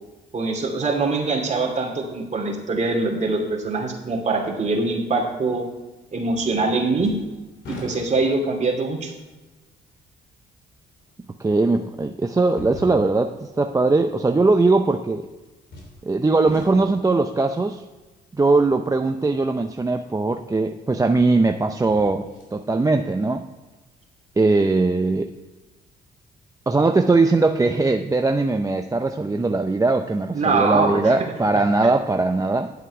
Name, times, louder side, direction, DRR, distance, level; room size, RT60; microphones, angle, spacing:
voice 1, 0.3-5.7 6.1-7.1 7.7-9.1 30.3-31.2, right 3 dB, 35° right, 1 dB, 2.6 m, -23 dB
sound 1, 6.3-6.7 7.0-8.5 9.2-9.3 11.1-11.2 12.5-13.4 15.7-16.1 16.5-17.2 20.2-20.3 21.7-22.6 23.0-23.1, left 1 dB, 70° left, 2.9 m, -40 dB
voice 2, 11.4-15.3 16.0-17.8 18.4-23.5 24.4-25.3 26.7-32.7, right 3 dB, 15° right, 5 dB, 0.6 m, -20 dB
10.0 x 8.0 x 4.8 m, 1.2 s
cardioid pair, 90°, 20 cm